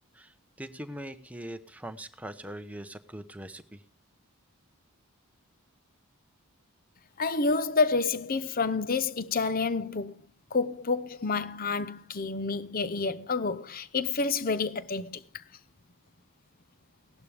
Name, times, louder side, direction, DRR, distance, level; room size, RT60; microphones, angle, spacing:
voice 1, 0.1-3.8, right 1 dB, 5° right, 0.8 m, -42 dB
voice 2, 7.2-10.1 10.5-15.4, left 4 dB, 40° left, 0.7 m, -29 dB
16.5 x 12.0 x 3.4 m
head